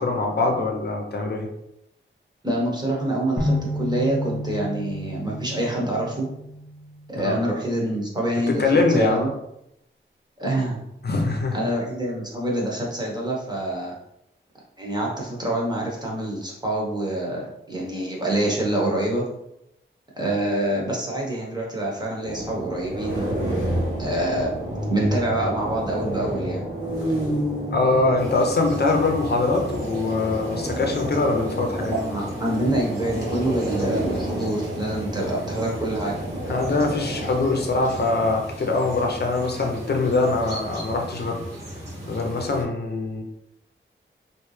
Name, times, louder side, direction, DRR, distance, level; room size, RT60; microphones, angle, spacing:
voice 1, 0.0-1.5 7.2-7.4 8.5-9.3 11.0-11.6 27.7-31.9 36.5-41.4 42.1-43.2, left 3 dB, 55° left, 2 dB, 0.7 m, -23 dB
voice 2, 2.4-6.3 7.1-9.3 10.4-10.8 11.5-13.9 14.8-19.2 20.2-23.3 24.0-24.5 24.9-26.6 31.9-36.1, right 1 dB, 20° right, -3 dB, 1.0 m, -26 dB
sound 1, 3.4-7.4, left 1 dB, 5° left, 0.7 m, -30 dB
sound 2, 22.2-38.3, right 1 dB, 70° right, 1.2 m, -30 dB
sound 3, 28.2-42.6, equal, 50° right, 1.3 m, -37 dB
3.1 x 2.6 x 3.2 m, 0.83 s
wide cardioid pair, 90°, 21 cm